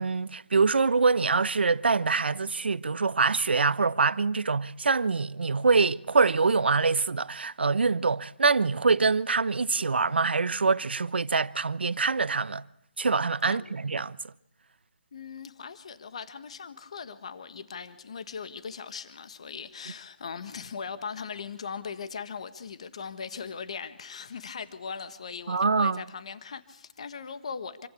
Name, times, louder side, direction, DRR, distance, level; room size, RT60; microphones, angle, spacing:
voice 1, 0.0-12.6 13.0-14.2 25.5-26.0, right 4 dB, 70° right, 1.1 m, -25 dB
voice 2, 13.4-13.7 15.1-27.9, left 6 dB, 35° left, 1.6 m, -39 dB
28.0 x 24.5 x 8.5 m
hypercardioid pair, 180°, 6 cm